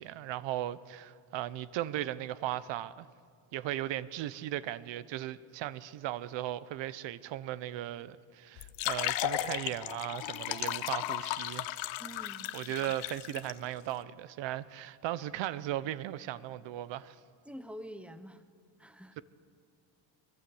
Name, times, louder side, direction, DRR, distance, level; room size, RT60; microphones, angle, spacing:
voice 1, 0.0-3.1 3.5-11.7 12.5-17.2, right 13 dB, 75° right, 1.0 m, -37 dB
sound 1, 8.6-13.5, left 15 dB, 85° left, 1.0 m, -35 dB
voice 2, 12.0-12.5 17.5-18.4 18.8-19.2, equal, 5° right, 1.0 m, -46 dB
23.0 x 22.5 x 7.9 m
cardioid pair, 145°, 44 cm